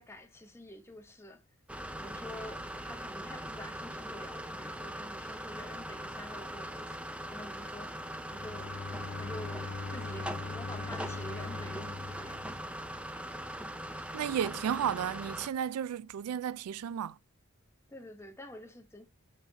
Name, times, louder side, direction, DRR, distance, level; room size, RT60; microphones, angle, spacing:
voice 1, 0.0-1.4 2.0-7.0 7.3-8.0 8.3-8.8 9.2-12.5 17.9-19.1, left 1 dB, 10° left, 1.0 m, -48 dB
sound 1, 1.7-15.5, right 1 dB, 5° right, 0.5 m, -41 dB
Bowed string instrument, 8.3-13.2, left 4 dB, 50° left, 0.4 m, -42 dB
voice 2, 14.1-17.2, right 9 dB, 85° right, 0.3 m, -33 dB
5.8 x 5.7 x 4.0 m
head